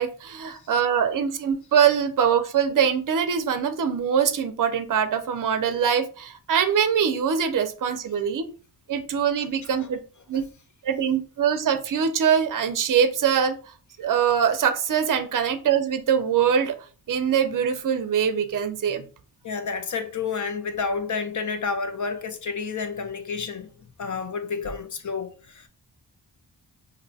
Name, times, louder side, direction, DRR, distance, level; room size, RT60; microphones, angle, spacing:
voice 1, 0.0-8.5 8.9-10.0 10.3-10.4 10.8-13.6 14.0-16.8 17.1-19.0, right 7 dB, 50° right, 0.5 m, -23 dB
voice 2, 19.4-23.7 24.0-25.7, left 5 dB, 45° left, 0.6 m, -30 dB
2.7 x 2.1 x 4.0 m
wide cardioid pair, 75°, 41 cm